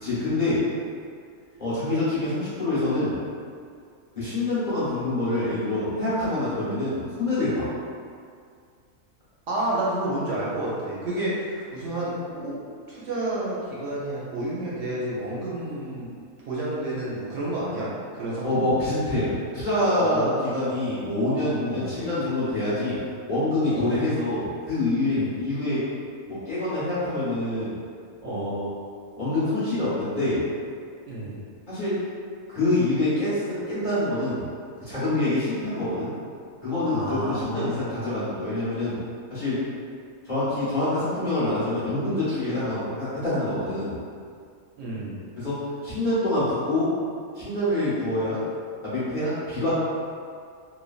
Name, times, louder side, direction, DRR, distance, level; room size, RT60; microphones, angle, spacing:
voice 1, 0.0-0.6 1.6-3.2 4.1-7.7 18.4-23.0 23.3-25.9 26.3-27.7 28.2-28.7 29.2-30.4 31.7-32.0 32.5-34.5 34.8-36.1 36.6-39.0 39.3-39.6 40.2-44.0 45.4-46.9 47.3-48.4 48.8-49.7, left 2 dB, 40° left, -13 dB, 0.8 m, -26 dB
voice 2, 9.5-12.6 12.9-16.1 16.5-18.6 20.0-20.8 21.6-22.0 23.7-23.9 25.1-25.3 28.2-28.5 31.1-31.4 36.9-37.8 44.8-45.3, right 1 dB, 70° right, -7 dB, 0.9 m, -30 dB
3.2 x 2.1 x 2.3 m, 2.2 s
omnidirectional pair, 1.5 m